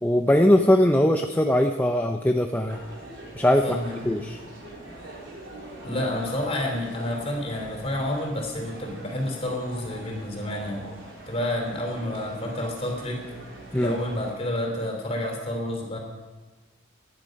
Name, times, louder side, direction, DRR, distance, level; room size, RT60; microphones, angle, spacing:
voice 1, 0.0-2.8 3.4-3.6 4.1-4.4 13.7-14.0, left 1 dB, 10° left, 4 dB, 0.6 m, -20 dB
sound 1, 2.7-14.3, right 1 dB, 70° right, 4.3 m, -43 dB
voice 2, 3.6-4.3 5.8-10.8 11.3-13.2 13.7-16.0, left 1 dB, 30° left, 1 dB, 3.6 m, -29 dB
18.5 x 11.0 x 5.3 m, 1.3 s
head